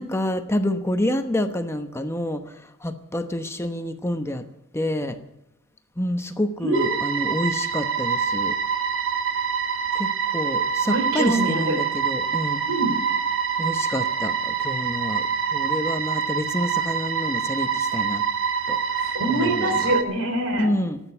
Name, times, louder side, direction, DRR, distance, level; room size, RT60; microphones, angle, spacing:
voice 1, 0.0-2.4 2.8-4.4 4.7-5.2 6.0-8.5 9.9-12.6 13.6-15.2 15.5-18.2 18.7-19.8 20.6-21.0, left 1 dB, 15° left, 7 dB, 0.9 m, -28 dB
voice 2, 6.6-7.0 10.8-11.8 12.7-13.0 19.1-20.7, right 1 dB, 85° right, 7 dB, 3.4 m, -24 dB
sound 1, 6.7-20.0, right 6 dB, 65° right, 1.3 m, -25 dB
14.0 x 9.1 x 10.0 m, 0.85 s
head